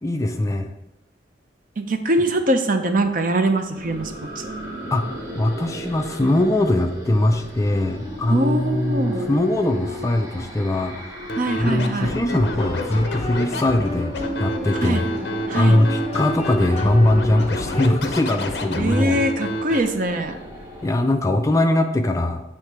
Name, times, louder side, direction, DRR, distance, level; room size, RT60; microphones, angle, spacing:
voice 1, 0.0-0.7 4.9-5.1 5.3-15.0 15.5-19.2 20.8-22.4, left 1 dB, 15° left, 5 dB, 0.3 m, -21 dB
voice 2, 1.8-4.5 8.3-9.3 11.4-12.1 14.8-15.1 15.5-15.8 18.8-20.4, right 1 dB, 45° right, 6 dB, 0.6 m, -22 dB
sound 1, 3.7-20.9, equal, 20° right, 1.1 m, -36 dB
Scratching (performance technique), 11.3-19.8, left 1 dB, 60° left, 0.6 m, -29 dB
sound 2, 12.5-18.0, equal, 35° left, 1.0 m, -32 dB
8.3 x 3.2 x 4.6 m, 0.95 s
head